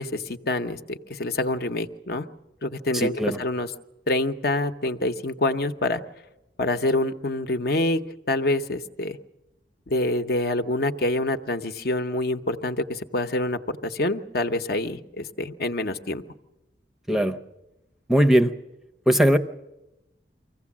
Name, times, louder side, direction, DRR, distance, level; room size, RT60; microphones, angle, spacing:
voice 1, 0.0-2.3 2.6-3.7 4.1-6.0 6.6-8.0 8.3-9.2 9.9-16.2, left 2 dB, 60° left, 8 dB, 0.8 m, -26 dB
voice 2, 2.9-3.4 17.1-17.4 18.1-18.5 19.1-19.4, equal, ahead, 7 dB, 0.6 m, -19 dB
24.0 x 16.0 x 7.3 m, 0.98 s
head